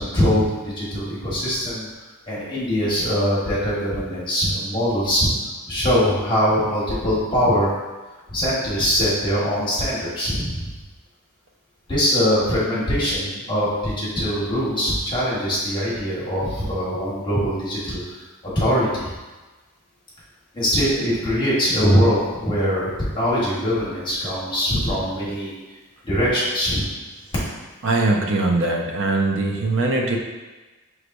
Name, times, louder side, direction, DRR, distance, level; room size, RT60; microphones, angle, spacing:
voice 1, 0.0-1.9 2.3-5.3 5.7-7.7 8.3-10.7 11.9-18.0 18.5-19.1 20.5-25.5 26.0-26.9, equal, 20° left, -9 dB, 1.3 m, -22 dB
voice 2, 27.8-30.2, right 2 dB, 55° right, 1 dB, 0.5 m, -21 dB
5.1 x 3.2 x 2.5 m, 1.2 s
head